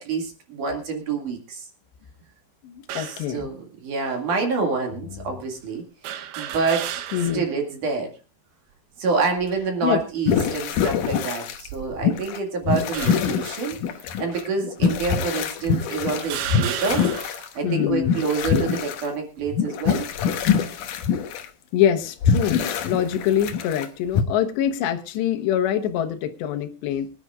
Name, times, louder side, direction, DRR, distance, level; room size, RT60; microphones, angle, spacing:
voice 1, 0.0-1.7 2.9-6.9 7.3-8.1 9.0-13.8 14.2-17.0 17.6-20.1, right 4 dB, 55° right, 2 dB, 3.4 m, -27 dB
voice 2, 2.6-3.5 5.1-5.3 7.1-7.5 9.8-10.0 17.6-18.2 21.7-27.1, left 10 dB, 90° left, 7 dB, 3.3 m, -24 dB
sound 1, 2.9-3.3 4.1-4.2 6.0-7.5 7.9-8.0 9.2-9.6 10.3-10.6 11.5-12.3 12.9-13.4 14.3-14.4 15.3-15.4 16.2-17.5, right 11 dB, 75° right, 2.8 m, -33 dB
sound 2, 10.3-11.7 12.0-12.4 12.6-19.1 19.5-21.4 22.0-23.9 24.1-24.2, left 7 dB, 70° left, 2.1 m, -24 dB
24.0 x 11.0 x 2.4 m, 0.32 s
omnidirectional pair, 4.8 m